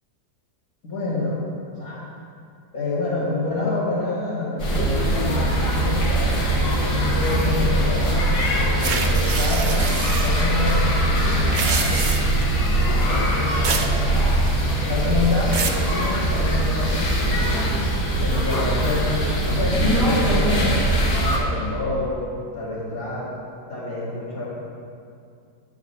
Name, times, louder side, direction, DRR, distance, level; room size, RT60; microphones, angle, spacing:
voice 1, 0.8-1.4 1.7-2.1 2.7-8.1 8.7-12.2 13.1-14.3 14.9-17.7 18.2-19.1 19.4-22.3 22.5-23.3 23.7-24.4, left 2 dB, 60° left, -11 dB, 2.7 m, -28 dB
sound 1, 4.6-21.4, right 1 dB, 85° left, 2.2 m, -21 dB
sound 2, 8.8-10.4 11.4-12.4 13.6-14.0 14.3-14.8 15.2-15.9, right 5 dB, 65° right, 0.4 m, -27 dB
10.5 x 5.0 x 6.8 m, 2.3 s
omnidirectional pair, 1.7 m